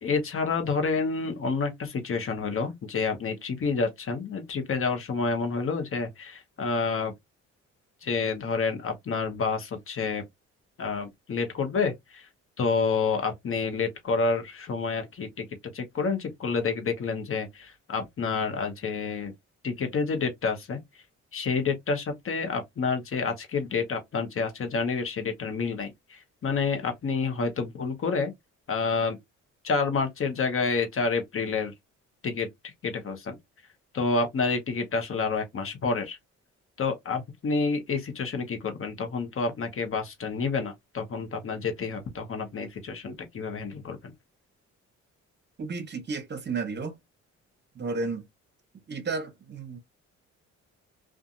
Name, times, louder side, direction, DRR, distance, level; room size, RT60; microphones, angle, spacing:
voice 1, 0.0-7.1 8.0-10.2 10.8-12.3 12.6-15.4 15.7-19.3 19.6-20.8 21.3-28.3 28.7-29.2 29.6-31.7 32.2-33.3 33.9-36.2 36.8-44.1, left 4 dB, 45° left, 1.0 m, -29 dB
voice 2, 45.6-47.0 47.8-48.2 48.9-49.8, right 4 dB, 35° right, 0.9 m, -32 dB
2.6 x 2.4 x 2.5 m
cardioid pair, 90°, 30 cm